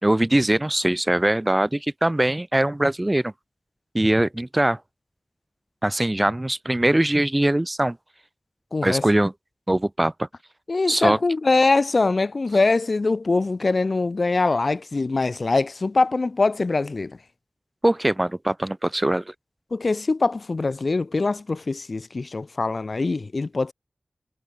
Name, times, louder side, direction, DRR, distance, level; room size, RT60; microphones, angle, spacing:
voice 1, 0.0-3.3 3.9-4.8 5.8-8.0 8.8-9.3 9.7-10.3 10.9-11.2 17.8-19.3, right 1 dB, 20° right, 3.6 m, -21 dB
voice 2, 8.7-9.0 10.7-17.2 19.7-23.7, left 3 dB, 60° left, 6.6 m, -23 dB
wide cardioid pair, 75°, 0 cm